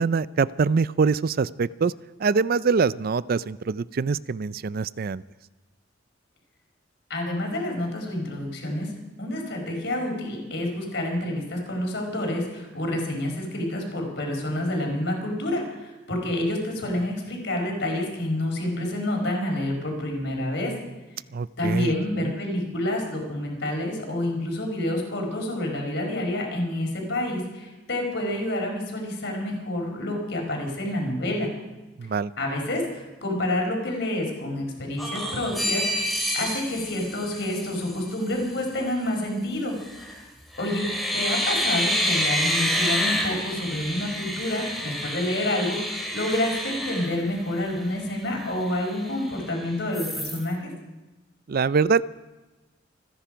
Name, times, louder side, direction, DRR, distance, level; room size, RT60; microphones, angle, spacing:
voice 1, 0.0-1.9 2.2-5.2 21.3-22.3 32.0-32.3 51.5-52.0, right 5 dB, 50° right, 18 dB, 0.4 m, -24 dB
voice 2, 7.1-8.9 9.2-20.7 21.6-31.5 32.4-36.1 36.3-39.8 40.6-40.9 41.1-50.7, left 1 dB, 65° left, 1 dB, 4.6 m, -28 dB
sound 1, 35.0-38.0 39.8-40.2 40.5-47.8 48.2-48.3 48.6-49.5 49.9-50.4, equal, ahead, 2.6 m, -28 dB
27.5 x 10.5 x 5.1 m, 1.1 s
head